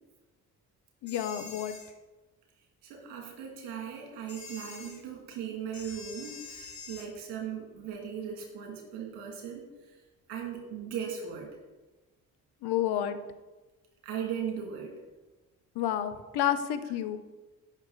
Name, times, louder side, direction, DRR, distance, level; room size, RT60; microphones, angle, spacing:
voice 1, 1.0-1.8 12.6-13.2 15.8-17.2, left 10 dB, 70° left, 10 dB, 1.0 m, -30 dB
sound 1, 1.1-1.9 4.3-5.0 5.7-7.1, left 5 dB, 45° left, 2.0 m, -45 dB
voice 2, 2.8-10.0 10.3-11.5 14.0-14.9 16.8-16.9, right 8 dB, 85° right, 0 dB, 2.6 m, -38 dB
16.0 x 6.4 x 4.0 m, 1.2 s
hypercardioid pair, 40°, 41 cm